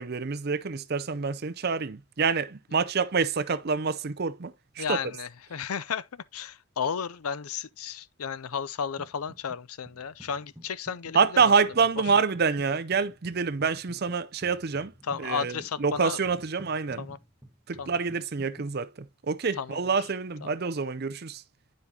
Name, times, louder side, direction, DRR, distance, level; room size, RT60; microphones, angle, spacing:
voice 1, 0.0-5.0 11.1-14.9 15.2-17.1 17.7-21.4, right 5 dB, 45° right, 0.6 m, -27 dB
voice 2, 4.8-11.5 15.0-16.2 17.0-17.2 17.8-18.0 19.6-19.8 20.4-20.5, left 6 dB, 85° left, 0.6 m, -33 dB
sound 1, 9.0-9.6 9.9-18.7, equal, 10° right, 1.1 m, -51 dB
9.7 x 5.2 x 2.8 m
head